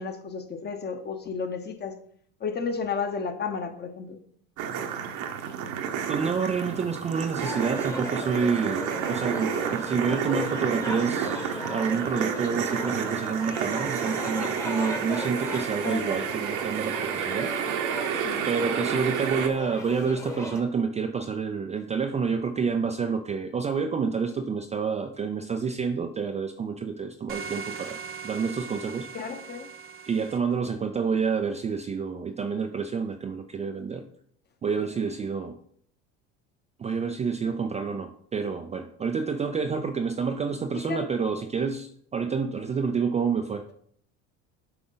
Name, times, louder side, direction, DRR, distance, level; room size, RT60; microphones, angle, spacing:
voice 1, 0.0-1.9 2.4-4.2 15.8-16.2 18.2-18.5 29.1-29.7 40.8-41.1, left 5 dB, 30° left, 7 dB, 1.0 m, -32 dB
sound 1, 4.6-19.5, right 8 dB, 65° right, 1.1 m, -31 dB
voice 2, 6.1-17.5 18.5-29.1 30.1-34.0 34.6-35.6 36.8-43.6, right 5 dB, 20° right, 6 dB, 0.4 m, -28 dB
sound 2, 7.4-20.6, left 1 dB, 10° left, 1.1 m, -37 dB
sound 3, 27.3-30.4, right 6 dB, 40° right, 0.8 m, -39 dB
7.8 x 5.0 x 3.9 m, 0.63 s
supercardioid pair, 115°, 34 cm